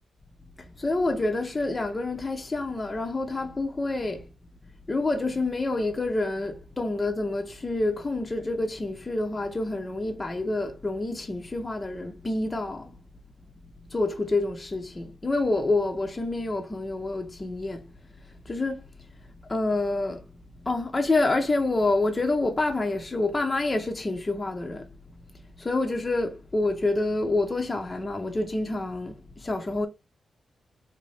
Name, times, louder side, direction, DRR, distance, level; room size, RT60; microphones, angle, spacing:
voice 1, 0.6-4.3 4.9-13.0 13.9-17.9 18.2-18.9 19.5-20.3 20.6-24.9 25.6-29.9, left 2 dB, 30° left, 0.7 m, -27 dB
3.6 x 2.7 x 3.2 m
cardioid pair, 75°, 0 cm